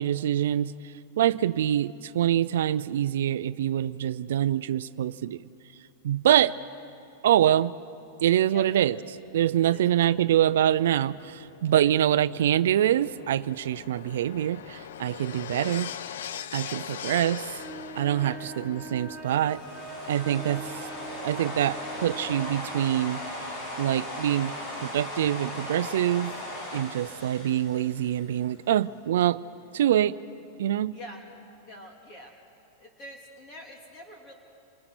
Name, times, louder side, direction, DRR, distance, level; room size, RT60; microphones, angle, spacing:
voice 1, 0.0-5.4 6.0-6.5 7.2-7.7 8.2-9.0 9.3-15.9 16.5-17.6 18.0-19.6 20.1-20.7 21.2-23.2 23.8-24.5 24.8-26.3 26.7-29.4 29.7-30.2 30.6-31.0, right 11 dB, 75° right, 12 dB, 0.5 m, -25 dB
sound 1, 9.2-25.6 26.6-26.7, left 9 dB, 75° left, 0.7 m, -43 dB
voice 2, 9.6-10.2 11.7-11.9 15.5-15.7 16.6-17.0 18.2-18.4 20.4-20.6 30.9-31.2 31.6-32.3 32.8-34.3, equal, 25° left, 1 dB, 2.4 m, -46 dB
sound 2, 17.5-22.5, right 4 dB, 5° left, 7.1 m, -43 dB
sound 3, 19.3-28.5, left 1 dB, 40° left, 6.7 m, -38 dB
28.0 x 25.5 x 6.2 m, 2.9 s
supercardioid pair, 165°, 0 cm